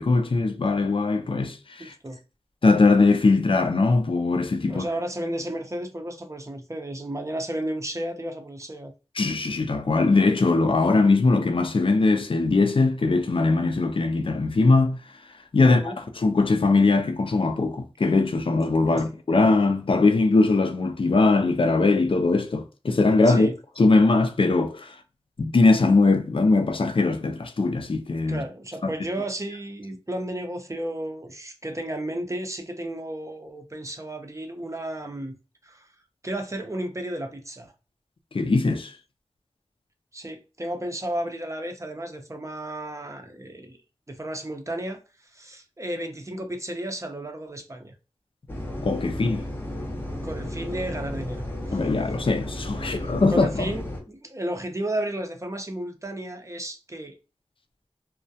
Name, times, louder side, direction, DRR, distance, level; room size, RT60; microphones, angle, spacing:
voice 1, 0.0-1.9 2.6-4.8 9.2-15.0 15.5-23.5 23.8-25.0 25.4-28.4 38.3-38.9 48.8-49.5 51.7-53.7, left 3 dB, 55° left, 0.5 m, -21 dB
voice 2, 1.8-2.2 4.7-8.9 15.6-16.0 18.9-19.1 23.3-23.5 28.3-35.3 35.6-35.9 36.2-37.7 40.1-43.8 44.1-48.0 50.2-51.8 53.0-57.2, right 1 dB, 30° right, 0.5 m, -33 dB
sound 1, 48.5-54.0, left 1 dB, 20° left, 0.7 m, -33 dB
2.3 x 2.1 x 2.6 m
wide cardioid pair, 45°, 11 cm